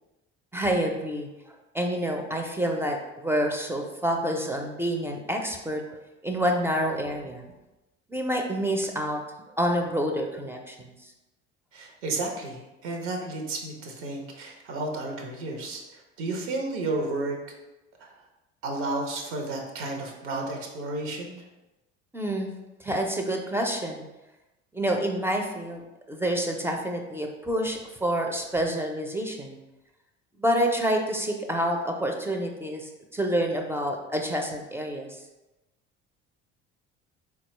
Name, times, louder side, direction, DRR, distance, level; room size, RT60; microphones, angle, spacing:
voice 1, 0.5-5.8 6.2-7.4 8.1-9.2 9.6-11.1 22.1-22.5 22.8-24.0 24.7-29.6 30.4-35.1, equal, 5° right, 2 dB, 0.4 m, -28 dB
voice 2, 11.7-17.4 18.0-18.1 18.6-21.4, right 2 dB, 75° right, 2 dB, 0.8 m, -32 dB
3.9 x 2.3 x 3.0 m, 1.0 s
hypercardioid pair, 60°, 35 cm